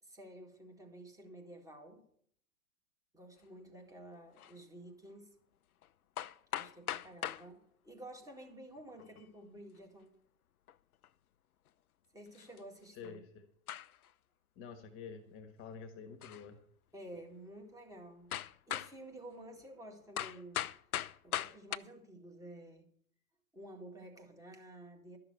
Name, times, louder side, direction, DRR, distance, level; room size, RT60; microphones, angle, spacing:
voice 1, 0.0-2.0 3.1-5.3 6.6-10.1 12.1-13.2 16.9-18.3 18.7-20.6 21.2-22.9 23.5-25.2, right 1 dB, 10° right, 2 dB, 2.0 m, -51 dB
sound 1, 4.4-4.5 5.8-5.9 6.2-7.5 8.8-9.2 10.7-10.8 11.0-11.1 12.3-12.6 13.0-13.2 13.7-14.1 16.2-16.5 17.1-17.2 18.3-19.0 20.2-21.8, left 11 dB, 85° left, 0.6 m, -39 dB
voice 2, 12.9-13.5 14.5-16.6, left 6 dB, 30° left, 6 dB, 1.4 m, -48 dB
12.5 x 6.8 x 8.0 m, 0.65 s
hypercardioid pair, 120°, 43 cm